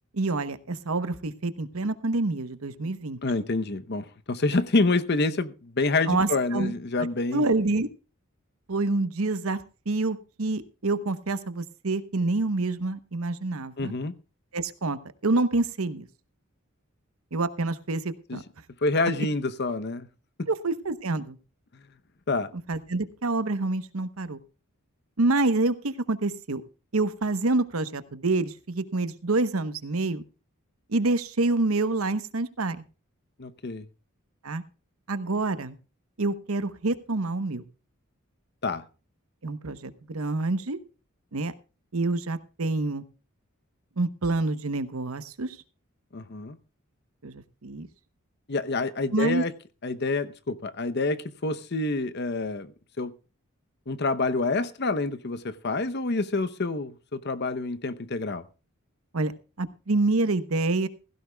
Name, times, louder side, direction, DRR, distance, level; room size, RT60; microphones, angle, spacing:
voice 1, 0.1-3.2 6.1-6.7 7.3-7.9 8.7-13.9 14.5-16.1 17.3-18.4 20.5-21.4 22.7-24.4 25.2-26.6 26.9-30.2 30.9-32.8 34.4-34.6 35.1-35.8 36.2-37.6 39.4-40.8 41.3-41.5 41.9-43.0 44.0-45.6 47.2-47.9 49.1-49.4 59.1-59.3 59.6-60.9, right 2 dB, 75° right, 1.0 m, -27 dB
voice 2, 3.2-7.4 13.8-14.1 18.3-18.4 18.8-20.1 20.4-20.5 22.3-22.5 33.4-33.9 38.6-38.8 46.1-46.6 48.5-49.5 49.8-52.7 53.0-53.1 53.9-58.4, left 3 dB, 50° left, 0.8 m, -27 dB
16.0 x 16.0 x 2.3 m
head